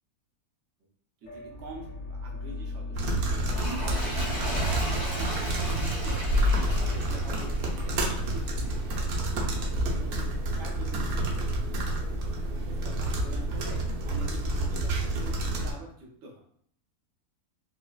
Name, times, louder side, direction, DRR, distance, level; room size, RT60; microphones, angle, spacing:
sound 1, 1.2-13.2, left 3 dB, 65° left, 1.3 m, -43 dB
voice 1, 1.2-1.9 2.2-6.2 6.5-10.3 10.6-12.2 12.6-16.4, right 1 dB, 60° right, -2 dB, 1.0 m, -46 dB
sound 2, 2.9-15.7, right 1 dB, 85° right, 1.1 m, -29 dB
Toilet flush, 3.4-8.9 9.6-9.7, equal, 30° right, 0.6 m, -37 dB
3.9 x 2.0 x 2.3 m, 0.63 s
omnidirectional pair, 1.5 m